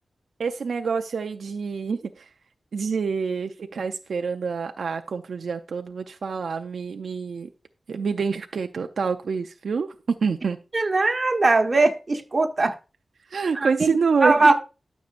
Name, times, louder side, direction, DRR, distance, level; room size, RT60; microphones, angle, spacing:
voice 1, 0.4-2.3 2.7-7.5 7.9-9.9 10.2-10.6 13.3-14.5, right 5 dB, 85° right, 0.5 m, -27 dB
voice 2, 10.7-12.7 13.5-14.5, right 3 dB, 40° right, 1.4 m, -20 dB
12.5 x 6.5 x 2.5 m
wide cardioid pair, 90°, 0 cm